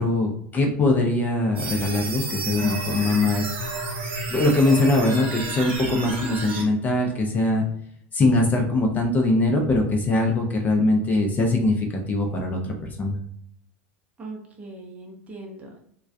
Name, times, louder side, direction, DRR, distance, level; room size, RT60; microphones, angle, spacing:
voice 1, 0.0-3.5 4.3-7.6 8.1-13.2, left 2 dB, 25° left, 2 dB, 0.5 m, -22 dB
sound 1, 1.6-6.6, right 3 dB, 85° right, 0.7 m, -31 dB
voice 2, 14.2-15.9, right 2 dB, 20° right, 0 dB, 0.7 m, -40 dB
2.3 x 2.2 x 2.5 m, 0.69 s
hypercardioid pair, 100°, 7 cm